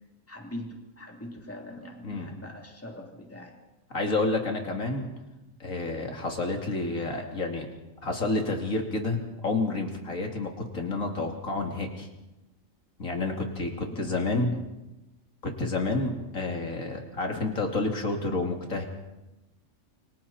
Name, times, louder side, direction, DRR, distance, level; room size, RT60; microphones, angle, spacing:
voice 1, 0.3-3.6 13.9-14.6, left 1 dB, 10° left, 0 dB, 3.2 m, -41 dB
voice 2, 3.9-5.1 5.6-7.7 8.0-12.1 13.0-14.5 15.4-18.9, left 2 dB, 80° left, 2 dB, 3.3 m, -29 dB
29.0 x 24.0 x 4.4 m, 1.0 s
omnidirectional pair, 1.4 m